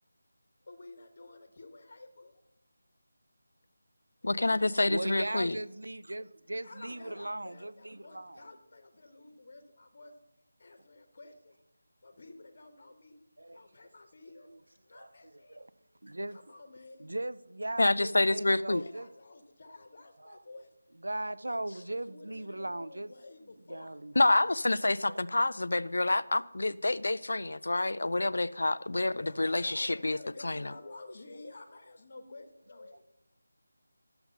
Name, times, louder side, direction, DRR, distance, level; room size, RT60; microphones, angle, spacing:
voice 1, 0.6-2.4 4.4-5.4 6.6-10.2 10.6-11.5 12.0-13.2 13.5-14.5 14.8-15.6 16.3-17.1 18.8-20.7 21.4-24.0 29.1-33.0, left 2 dB, 45° left, 1.3 m, -51 dB
voice 2, 4.2-5.6 17.8-18.8 24.2-30.2 30.4-30.7, left 2 dB, 65° left, 0.4 m, -28 dB
voice 3, 4.9-8.4 13.4-13.6 14.5-14.6 14.9-15.7 16.0-16.4 17.0-19.1 20.2-20.4 21.0-23.1 23.7-24.4 24.8-25.2 32.9-33.0, right 1 dB, 75° right, 0.5 m, -38 dB
11.0 x 6.9 x 5.3 m
figure-of-eight pair, 165°, 0 cm